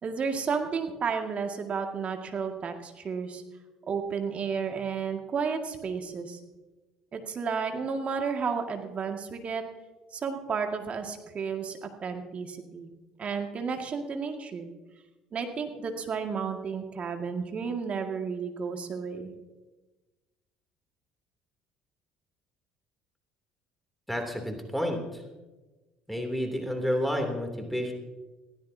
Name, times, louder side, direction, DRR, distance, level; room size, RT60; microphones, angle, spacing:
voice 1, 0.0-3.4 3.9-6.4 7.1-9.6 10.1-12.9 13.2-14.7 15.3-19.3, right 5 dB, 40° right, 4 dB, 2.0 m, -32 dB
voice 2, 24.1-25.2 26.1-27.9, equal, ahead, 3 dB, 2.9 m, -30 dB
22.0 x 16.0 x 2.8 m, 1.2 s
hypercardioid pair, 60°, 3 cm